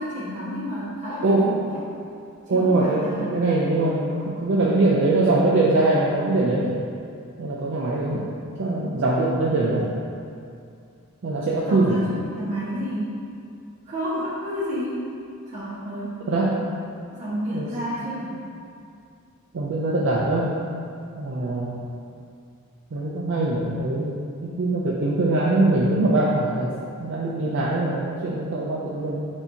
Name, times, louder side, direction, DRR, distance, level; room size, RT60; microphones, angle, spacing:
voice 1, 0.0-1.8 2.5-3.3 11.7-13.2 13.9-15.1 15.5-16.2 17.1-18.4, equal, 30° right, -10 dB, 1.3 m, -30 dB
voice 2, 1.2-1.6 2.5-6.8 7.4-8.3 8.6-9.9 11.2-12.0 16.3-16.6 17.5-17.7 19.5-20.6 21.2-21.8 22.9-26.7 27.0-29.3, right 2 dB, 55° right, -5 dB, 0.4 m, -22 dB
6.4 x 2.7 x 2.8 m, 2.4 s
head